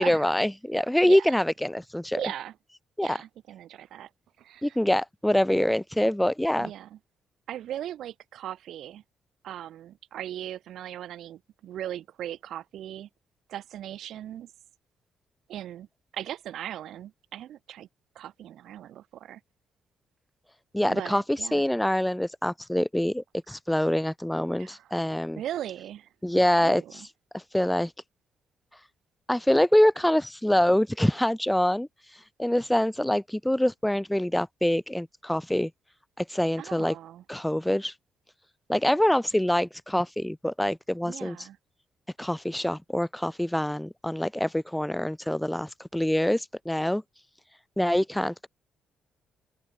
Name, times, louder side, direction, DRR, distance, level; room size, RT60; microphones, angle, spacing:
voice 1, 0.0-2.2 3.0-3.2 4.6-6.7 20.7-25.4 26.2-26.8 27.3-27.9 29.3-31.9 32.4-35.7 36.2-36.9 37.3-37.9 38.7-41.5 42.2-47.0 47.8-48.5, left 1 dB, 5° left, 1.2 m, -25 dB
voice 2, 1.1-1.4 2.2-2.5 3.0-4.1 4.4-4.8 6.6-7.0 7.5-9.0 9.4-13.1 13.5-14.5 15.5-15.9 16.1-17.9 18.2-19.4 20.9-21.6 24.6-24.9 25.4-26.1 26.6-27.1 36.6-37.2 41.0-41.6, right 11 dB, 75° right, 5.3 m, -38 dB
open air
cardioid pair, 90°, 0 cm